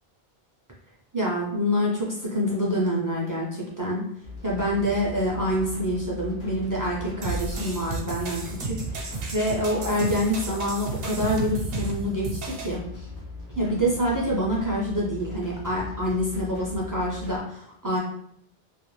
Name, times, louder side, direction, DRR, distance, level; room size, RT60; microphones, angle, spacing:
voice 1, 1.1-4.0 4.4-13.1 13.6-18.0, equal, 30° right, -5 dB, 0.4 m, -26 dB
sound 1, 4.2-17.4, left 3 dB, 55° left, 0.8 m, -39 dB
sound 2, 7.2-12.8, right 3 dB, 70° right, 0.8 m, -33 dB
2.4 x 2.2 x 3.0 m, 0.69 s
omnidirectional pair, 1.0 m